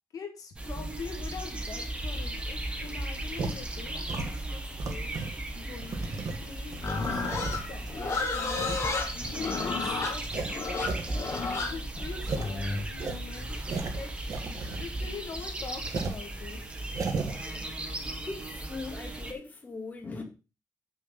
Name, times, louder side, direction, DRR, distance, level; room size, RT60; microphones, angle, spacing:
voice 1, 0.1-5.1 5.5-6.1 6.4-8.8 9.2-11.0 11.4-13.6 13.9-14.1 14.6-16.7, left 5 dB, 60° left, 1.7 m, -43 dB
sound 1, 0.6-19.3, right 1 dB, 15° right, 1.5 m, -37 dB
sound 2, 3.4-3.6 4.1-5.4 5.8-7.9 8.5-8.8 9.3-9.4 9.8-9.9 10.2-11.1 11.3-11.4 11.7-11.8 12.2-12.5 12.9-15.0 15.3-15.4 15.8-16.2 16.8-17.4, right 4 dB, 55° right, 1.6 m, -35 dB
Livestock farm animals working animals, 6.8-12.8, left 4 dB, 40° left, 2.1 m, -32 dB
voice 2, 18.3-20.2, left 3 dB, 25° left, 1.9 m, -40 dB
7.6 x 6.4 x 5.3 m
wide cardioid pair, 155°, 7 cm